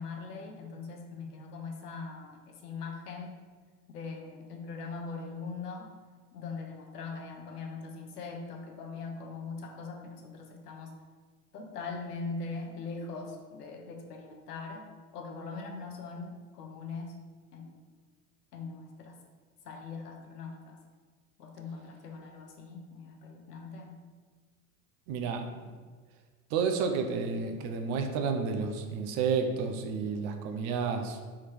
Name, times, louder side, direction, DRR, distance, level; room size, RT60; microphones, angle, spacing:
voice 1, 0.0-3.3 3.9-5.9 6.3-10.9 11.5-14.8 15.1-17.1 17.5-17.8 18.5-19.2 19.6-20.8 21.4-24.0, left 4 dB, 90° left, 2 dB, 0.9 m, -41 dB
voice 2, 25.1-25.7 26.5-31.2, right 5 dB, 35° right, 5 dB, 0.5 m, -31 dB
3.5 x 3.1 x 4.5 m, 1.5 s
hypercardioid pair, 110°, 46 cm